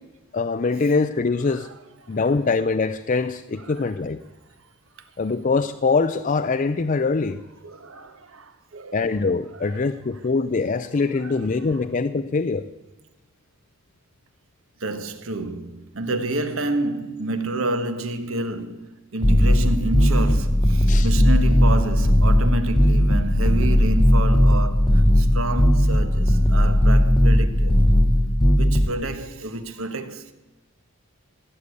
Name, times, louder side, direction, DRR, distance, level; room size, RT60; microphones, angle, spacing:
voice 1, 0.3-1.7 2.1-4.2 5.2-7.4 8.9-12.7 20.9-21.1, left 4 dB, 35° left, 0.4 m, -23 dB
voice 2, 7.6-9.1 9.6-9.9 10.7-10.8 11.2-11.5 14.8-27.8 28.6-30.3, right 2 dB, 65° right, 1.3 m, -29 dB
sound 1, 19.2-28.9, equal, 20° left, 0.8 m, -17 dB
17.0 x 8.2 x 8.3 m
head